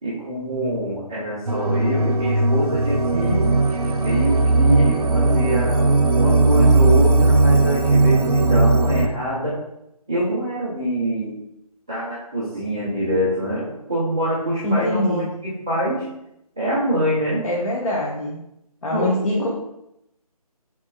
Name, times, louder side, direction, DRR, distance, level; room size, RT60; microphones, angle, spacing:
voice 1, 0.0-3.5 4.0-5.9 6.1-9.6 10.1-11.3 11.9-15.2 15.7-16.0 16.6-17.4 18.9-19.1 19.3-19.5, right 1 dB, 5° right, -11 dB, 0.3 m, -24 dB
sound 1, 1.5-9.1, right 2 dB, 75° right, 0.6 m, -17 dB
voice 2, 14.6-15.3 17.4-18.4 18.8-19.5, left 1 dB, 60° left, -4 dB, 0.9 m, -23 dB
6.3 x 3.4 x 2.2 m, 0.83 s
figure-of-eight pair, 150°, 19 cm